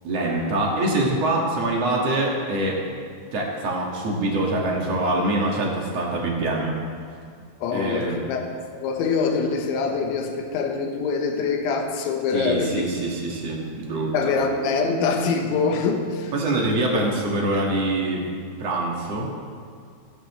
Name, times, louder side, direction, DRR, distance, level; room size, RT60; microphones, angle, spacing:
voice 1, 0.0-2.8 3.3-6.7 7.7-8.2 12.3-14.3 16.3-18.3 18.6-19.3, right 2 dB, 55° right, -2 dB, 1.9 m, -24 dB
voice 2, 7.6-8.4 8.7-12.9 14.1-16.3, left 5 dB, 75° left, 3 dB, 3.3 m, -24 dB
28.0 x 9.8 x 3.2 m, 2.2 s
omnidirectional pair, 5.7 m